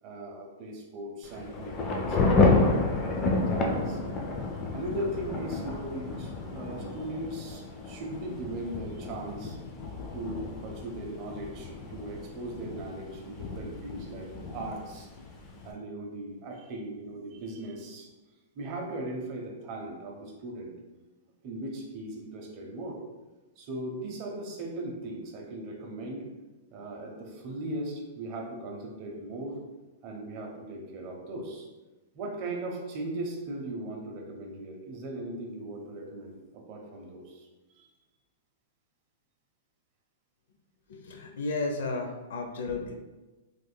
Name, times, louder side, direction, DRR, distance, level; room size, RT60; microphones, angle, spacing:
voice 1, 0.0-3.0 3.3-4.0 4.7-9.6 10.1-15.1 15.6-18.1 18.6-20.7 21.4-23.0 23.6-26.2 26.7-29.6 30.0-31.7 32.1-37.9, right 1 dB, 30° right, 0 dB, 0.6 m, -38 dB
Thunder / Rain, 1.2-15.7, left 3 dB, 20° left, 0.3 m, -30 dB
voice 2, 40.9-42.9, left 3 dB, 75° left, 4 dB, 0.6 m, -33 dB
3.4 x 3.2 x 2.2 m, 1.2 s
supercardioid pair, 165°, 0 cm